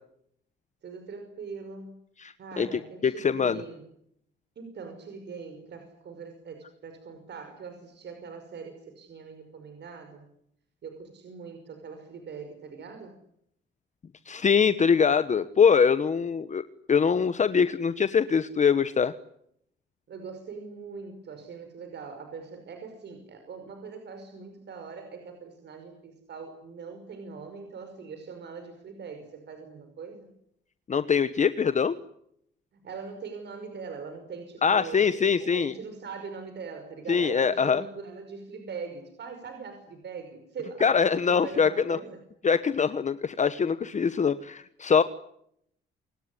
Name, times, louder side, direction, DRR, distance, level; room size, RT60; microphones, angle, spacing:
voice 1, 0.8-2.1 2.4-3.9 4.6-10.3 10.8-13.1 20.1-30.3 32.7-35.1 35.4-40.9 41.3-42.2, right 5 dB, 60° right, 6 dB, 5.5 m, -42 dB
voice 2, 2.2-2.7 3.0-3.6 14.3-16.6 16.9-19.1 30.9-32.0 34.6-35.7 37.1-37.8 40.8-42.0 42.4-45.0, left 6 dB, 35° left, 13 dB, 1.1 m, -23 dB
28.5 x 19.0 x 9.9 m, 0.74 s
cardioid pair, 90°, 20 cm